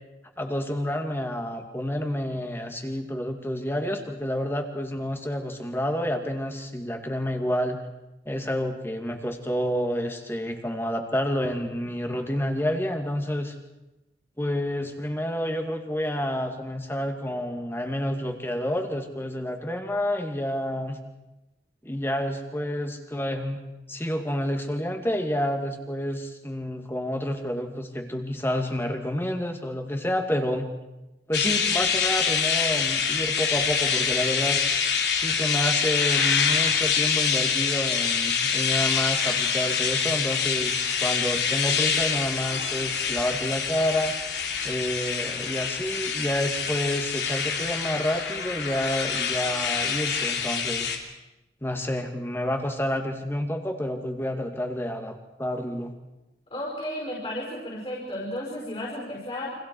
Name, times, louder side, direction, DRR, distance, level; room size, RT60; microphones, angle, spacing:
voice 1, 0.4-7.8 8.3-13.6 14.4-21.0 21.8-23.6 23.9-30.7 31.3-34.6 35.2-44.1 44.6-51.0 51.6-55.9, equal, 15° left, 4 dB, 2.3 m, -29 dB
sound 1, 31.3-51.0, left 6 dB, 70° left, 3.1 m, -26 dB
voice 2, 56.5-59.5, left 1 dB, 35° left, -3 dB, 5.3 m, -33 dB
29.5 x 25.5 x 4.7 m, 0.99 s
head